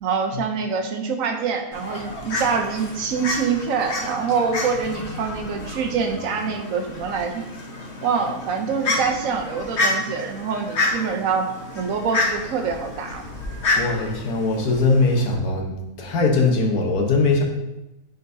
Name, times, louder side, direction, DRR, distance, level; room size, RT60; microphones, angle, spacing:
voice 1, 0.0-7.4 8.0-11.5 11.8-13.2, right 5 dB, 70° right, 4 dB, 1.1 m, -25 dB
Fowl, 1.7-15.3, left 2 dB, 50° left, 1.2 m, -29 dB
voice 2, 13.8-15.7 16.0-17.4, left 3 dB, 85° left, 1 dB, 1.5 m, -20 dB
9.1 x 4.0 x 2.7 m, 0.94 s
omnidirectional pair, 1.6 m